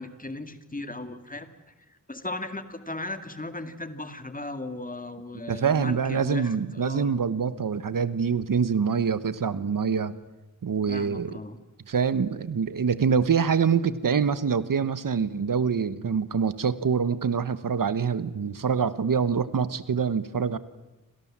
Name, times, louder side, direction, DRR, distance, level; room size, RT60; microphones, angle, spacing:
voice 1, 0.0-1.5 2.1-7.2 10.9-11.6, left 2 dB, 25° left, 10 dB, 2.2 m, -37 dB
voice 2, 5.5-10.1 10.6-11.4 11.9-20.6, right 6 dB, 80° right, 15 dB, 1.3 m, -25 dB
29.0 x 26.0 x 7.5 m, 1.1 s
wide cardioid pair, 110°, 33 cm